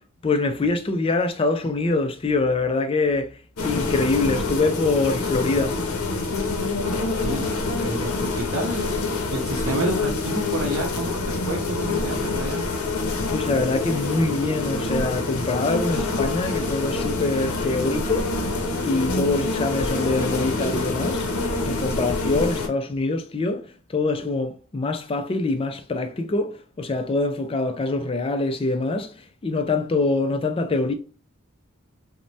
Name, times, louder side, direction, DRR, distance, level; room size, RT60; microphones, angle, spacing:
voice 1, 0.2-3.3 3.6-5.8 13.3-18.3 18.8-21.2 21.6-23.6 23.9-29.1 29.4-30.9, left 3 dB, 25° left, 0.3 m, -24 dB
sound 1, 3.6-22.7, left 3 dB, 90° left, 0.6 m, -26 dB
voice 2, 6.6-8.9 9.3-12.7, right 2 dB, 65° right, 0.6 m, -30 dB
3.1 x 2.1 x 2.6 m
head